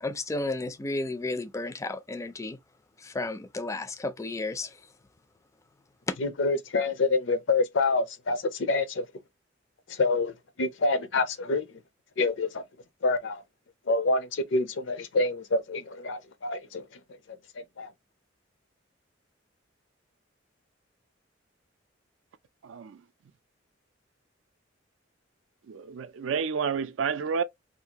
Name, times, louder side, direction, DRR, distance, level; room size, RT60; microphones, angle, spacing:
voice 1, 0.0-2.6 3.0-4.7 6.1-6.2, left 2 dB, 15° left, 0.3 m, -32 dB
voice 2, 6.2-9.1 9.9-11.7 12.2-12.6 13.0-13.4 13.9-16.8 17.6-17.9, left 3 dB, 70° left, 0.5 m, -27 dB
voice 3, 22.6-23.0 25.7-27.4, right 6 dB, 80° right, 0.4 m, -30 dB
2.7 x 2.4 x 2.8 m
head